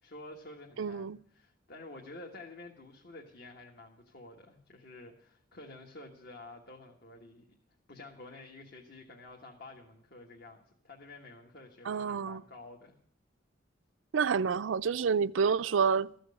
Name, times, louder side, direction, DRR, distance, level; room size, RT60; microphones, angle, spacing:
voice 1, 0.0-7.6 7.9-12.9, left 2 dB, 55° left, 1.4 m, -50 dB
voice 2, 0.8-1.2 11.9-12.4 14.1-16.1, right 6 dB, 80° right, 0.4 m, -28 dB
14.5 x 6.3 x 9.6 m
head